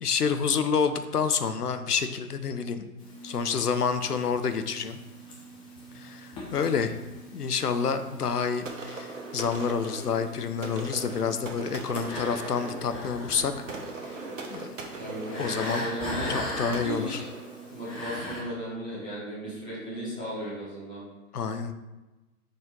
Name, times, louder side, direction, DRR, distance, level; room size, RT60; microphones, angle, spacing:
voice 1, 0.0-2.8 3.2-5.0 6.0-6.9 7.3-13.5 14.5-14.7 15.4-15.8 16.3-17.2 21.3-21.7, left 6 dB, 75° left, 9 dB, 0.7 m, -28 dB
sound 1, 3.0-18.4, left 1 dB, 10° left, 0.9 m, -41 dB
sound 2, 8.6-18.3, right 3 dB, 55° right, 1.2 m, -40 dB
voice 2, 14.9-17.3 17.7-21.0, equal, 5° right, -10 dB, 0.4 m, -35 dB
6.6 x 4.3 x 3.7 m, 1.1 s
figure-of-eight pair, 120°, 47 cm